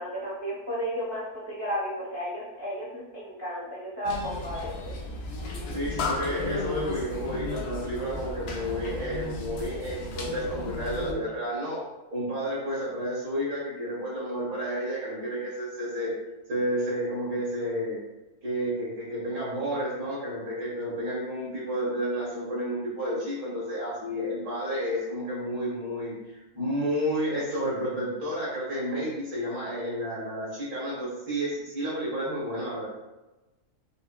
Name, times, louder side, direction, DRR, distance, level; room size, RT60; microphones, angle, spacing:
voice 1, 0.0-4.9, equal, 30° right, -9 dB, 0.6 m, -33 dB
sound 1, 4.0-11.1, left 3 dB, 75° left, 0.6 m, -34 dB
voice 2, 5.7-11.8 12.1-16.1 16.5-18.0 18.4-32.9, equal, 70° right, -8 dB, 1.8 m, -31 dB
5.3 x 2.0 x 2.2 m, 1.1 s
omnidirectional pair, 1.6 m